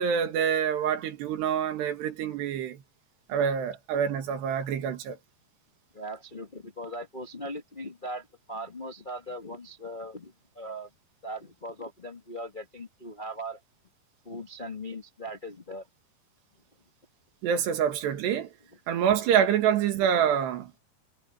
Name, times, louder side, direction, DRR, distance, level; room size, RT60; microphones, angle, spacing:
voice 1, 0.0-2.8 3.3-5.2 17.4-18.5 18.9-20.8, right 8 dB, 85° right, 4.1 m, -26 dB
voice 2, 5.9-10.9 11.2-13.6 14.2-15.9, equal, 55° left, 0.5 m, -39 dB
omnidirectional pair, 4.7 m